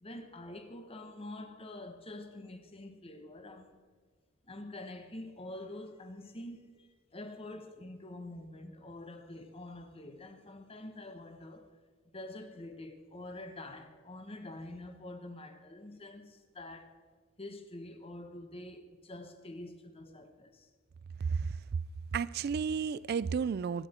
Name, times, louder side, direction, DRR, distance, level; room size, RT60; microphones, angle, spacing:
voice 1, 0.0-3.8 4.4-11.7 12.1-17.0 17.4-20.7, left 1 dB, 30° left, 1.1 m, -46 dB
voice 2, 22.1-23.9, right 6 dB, 50° right, 0.3 m, -32 dB
23.0 x 9.9 x 4.4 m
head